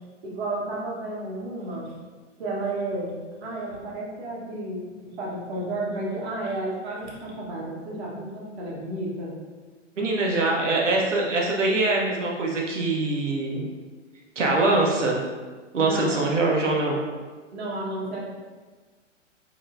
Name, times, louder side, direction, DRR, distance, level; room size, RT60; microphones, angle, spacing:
voice 1, 0.2-1.9 2.4-3.1 3.4-9.3 15.8-16.4 17.5-18.2, right 2 dB, 60° right, -5 dB, 1.2 m, -32 dB
voice 2, 10.0-13.6 14.4-15.2 15.7-17.0, right 2 dB, 75° right, -2 dB, 1.0 m, -23 dB
3.9 x 3.0 x 2.5 m, 1.4 s
figure-of-eight pair, 110°, 37 cm